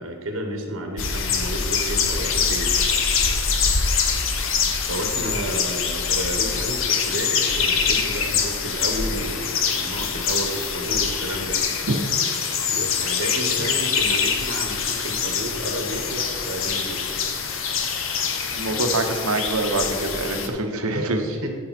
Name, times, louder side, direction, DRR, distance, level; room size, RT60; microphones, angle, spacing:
voice 1, 0.0-2.8 4.6-11.6 12.7-17.0 18.9-19.0 19.9-21.5, right 1 dB, 65° right, 3 dB, 1.4 m, -32 dB
sound 1, 1.0-20.5, left 6 dB, 65° left, 0.9 m, -24 dB
voice 2, 18.5-21.2, right 2 dB, 80° right, 5 dB, 1.0 m, -25 dB
13.5 x 5.4 x 4.4 m, 2.2 s
head